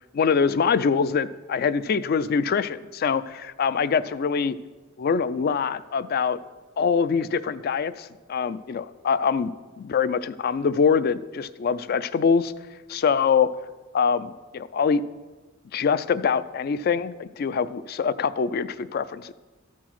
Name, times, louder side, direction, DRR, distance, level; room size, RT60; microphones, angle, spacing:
voice 1, 0.1-4.6 5.0-6.4 6.8-12.5 12.9-13.5 13.9-15.0 15.7-19.3, left 6 dB, 50° left, 15 dB, 0.3 m, -24 dB
13.5 x 4.6 x 5.8 m, 1.3 s
head